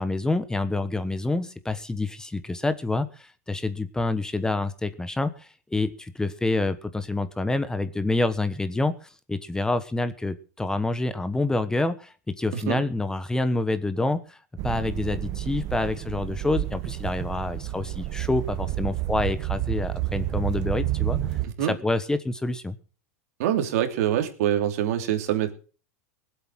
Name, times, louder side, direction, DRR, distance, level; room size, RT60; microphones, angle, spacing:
voice 1, 0.0-8.9 9.3-14.4 14.6-21.2 21.6-22.8, left 2 dB, 10° left, 12 dB, 1.2 m, -27 dB
sound 1, 14.6-21.5, right 14 dB, 45° right, 1.3 m, -30 dB
voice 2, 23.4-25.5, right 11 dB, 70° right, 7 dB, 2.9 m, -24 dB
19.5 x 8.2 x 6.3 m, 0.37 s
hypercardioid pair, 115°, 8 cm